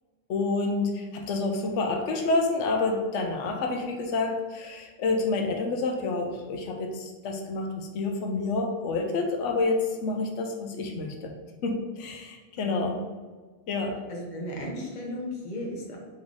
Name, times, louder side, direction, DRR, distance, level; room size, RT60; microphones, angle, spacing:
voice 1, 0.3-11.3 11.6-13.0 13.7-14.0, left 3 dB, 90° left, 3 dB, 0.9 m, -28 dB
voice 2, 14.1-16.0, left 1 dB, 45° left, -1 dB, 1.0 m, -35 dB
3.7 x 3.3 x 3.5 m, 1.4 s
omnidirectional pair, 1.2 m